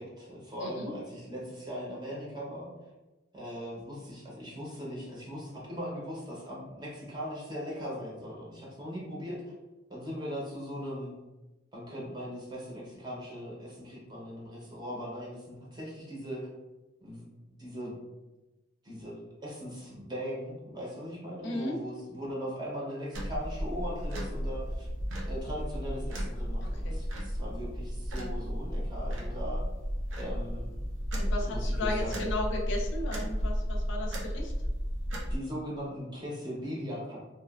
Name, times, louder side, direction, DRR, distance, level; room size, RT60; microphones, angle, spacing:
voice 1, 0.0-2.7 3.3-9.5 9.9-11.1 11.7-16.5 17.0-17.9 18.8-24.9 25.2-29.6 30.2-30.7 31.5-32.2 35.3-37.2, equal, 20° right, -5 dB, 0.6 m, -39 dB
voice 2, 0.6-0.9 21.4-21.8 26.6-27.0 31.2-34.5, left 2 dB, 70° left, 0 dB, 0.5 m, -35 dB
sound 1, 23.1-35.4, equal, 85° right, 0.6 m, -33 dB
2.7 x 2.2 x 2.3 m, 1.1 s
head